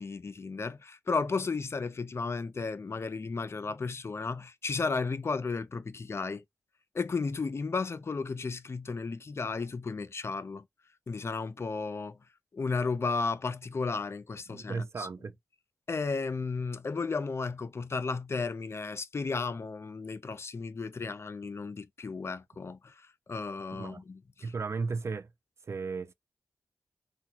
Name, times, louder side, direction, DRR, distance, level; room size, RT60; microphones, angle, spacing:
voice 1, 0.0-6.4 6.9-10.6 11.1-12.2 12.5-15.1 15.9-24.5, left 4 dB, 50° left, 0.4 m, -34 dB
voice 2, 14.5-15.4 23.7-24.0 24.4-25.3 25.7-26.1, right 4 dB, 55° right, 0.4 m, -35 dB
2.8 x 2.2 x 2.8 m
cardioid pair, 40°, 6 cm